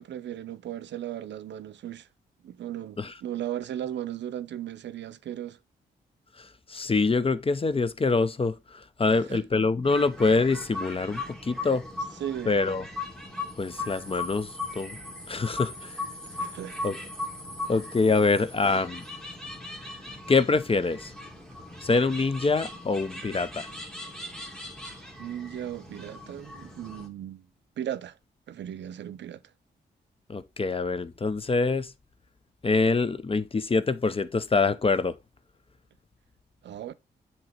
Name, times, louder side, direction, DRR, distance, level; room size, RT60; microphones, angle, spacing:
voice 1, 0.0-2.1 2.4-5.6 9.1-9.5 12.1-12.6 16.3-16.8 25.2-27.5 27.8-28.2 28.5-29.4 36.6-36.9, right 11 dB, 75° right, 0.6 m, -36 dB
voice 2, 6.7-8.5 9.0-11.8 12.5-12.8 13.6-14.5 14.8-15.0 15.3-15.7 16.8-17.0 17.7-19.0 20.3-21.1 21.8-23.7 30.3-31.9 32.6-35.1, left 4 dB, 30° left, 0.6 m, -25 dB
sound 1, 9.8-27.1, left 2 dB, 5° left, 2.0 m, -39 dB
7.6 x 2.9 x 4.3 m
cardioid pair, 60°, 19 cm